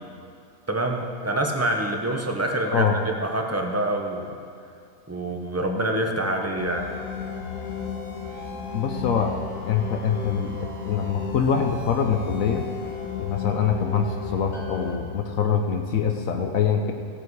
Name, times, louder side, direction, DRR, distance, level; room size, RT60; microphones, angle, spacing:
voice 1, 0.7-4.4 5.1-6.9, right 1 dB, 15° right, 2 dB, 0.6 m, -26 dB
sound 1, 6.6-15.0, left 6 dB, 85° left, 1.8 m, -34 dB
voice 2, 8.7-9.3 9.6-12.6 13.2-16.9, left 7 dB, 65° left, 4 dB, 1.1 m, -24 dB
16.5 x 8.0 x 4.7 m, 2.3 s
omnidirectional pair, 1.6 m